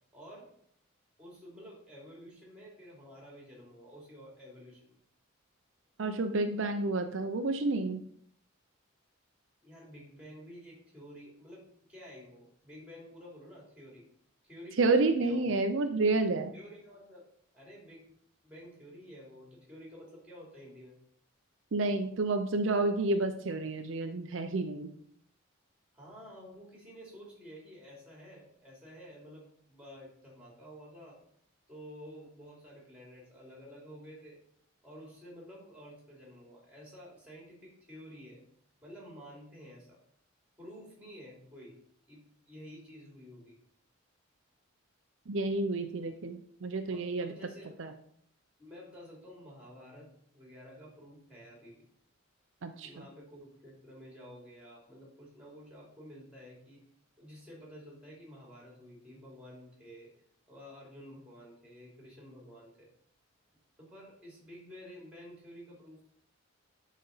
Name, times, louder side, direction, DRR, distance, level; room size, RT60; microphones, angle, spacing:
voice 1, 0.1-0.5 1.2-4.9 9.6-14.1 14.4-15.5 16.5-17.3 17.5-18.1 18.4-21.0 25.9-31.2 31.7-34.4 34.8-38.4 38.8-40.0 40.6-41.8 42.1-43.6 46.9-47.8 48.6-51.8 52.8-56.8 57.2-60.1 60.5-62.9 63.8-66.1, equal, 5° right, -3 dB, 2.9 m, -51 dB
voice 2, 6.0-8.0 14.8-16.5 21.7-24.9 45.3-47.3 47.8-47.9 52.6-52.9, right 3 dB, 65° right, 7 dB, 0.5 m, -30 dB
10.5 x 4.1 x 4.0 m, 0.66 s
head